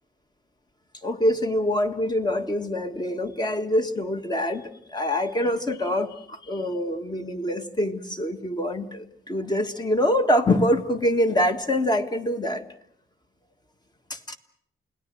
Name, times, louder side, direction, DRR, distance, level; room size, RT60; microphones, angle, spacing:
voice 1, 1.0-12.6 14.1-14.4, left 1 dB, 20° left, 7 dB, 1.7 m, -25 dB
29.0 x 18.5 x 7.8 m, 0.68 s
wide cardioid pair, 135°, 21 cm